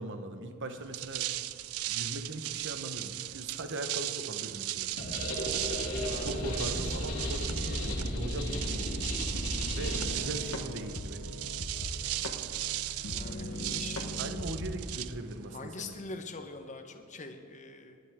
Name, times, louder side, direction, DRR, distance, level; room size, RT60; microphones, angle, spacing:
voice 1, 0.0-1.3 1.9-4.9 6.2-9.0 9.8-11.3 14.2-15.9, right 2 dB, 60° right, 7 dB, 1.1 m, -40 dB
sound 1, 0.8-15.6, right 14 dB, 80° right, 0.4 m, -37 dB
sound 2, 5.0-10.2, left 1 dB, 85° left, 2.8 m, -34 dB
voice 2, 6.0-6.7 13.1-14.0 15.5-18.0, left 3 dB, 35° left, 5 dB, 1.1 m, -44 dB
sound 3, 9.7-14.8, left 1 dB, 65° left, 1.2 m, -40 dB
19.0 x 11.5 x 3.7 m, 2.5 s
head